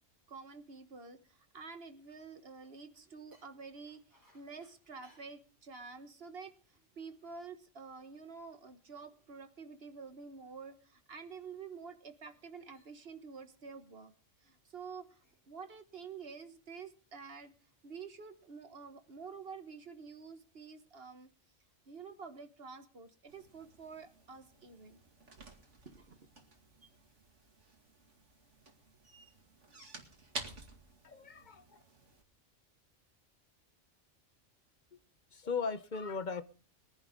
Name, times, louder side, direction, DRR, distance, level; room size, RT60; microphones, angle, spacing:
voice 1, 0.3-14.1 14.4-17.5 17.8-21.3 21.9-25.0 25.8-26.3, right 5 dB, 55° right, 9 dB, 1.6 m, -49 dB
sound 1, 1.4-8.2 8.6-11.7 12.2-12.5 12.7-13.2 13.6-13.8 15.0-15.5, equal, 15° left, 7.9 m, -73 dB
sound 2, 23.3-32.2, right 3 dB, 75° right, 2.6 m, -51 dB
voice 2, 31.0-31.8 35.3-36.4, left 5 dB, 45° left, 12 dB, 0.9 m, -38 dB
22.0 x 10.5 x 3.7 m, 0.37 s
omnidirectional pair, 1.2 m